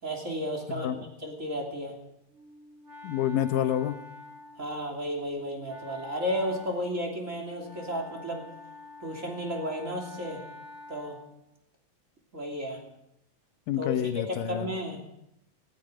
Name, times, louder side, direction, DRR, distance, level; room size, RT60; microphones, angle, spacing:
voice 1, 0.0-1.9 4.6-8.4 9.0-10.4 10.9-11.2 12.3-12.8 13.8-14.0 14.3-15.2, equal, 20° right, 1 dB, 3.0 m, -33 dB
Wind instrument woodwind instrument, 2.3-11.4, left 2 dB, 45° right, 2.5 m, -48 dB
voice 2, 3.0-4.0 13.7-14.7, left 10 dB, 75° left, 9 dB, 2.5 m, -28 dB
18.5 x 15.0 x 5.1 m, 0.83 s
omnidirectional pair, 4.0 m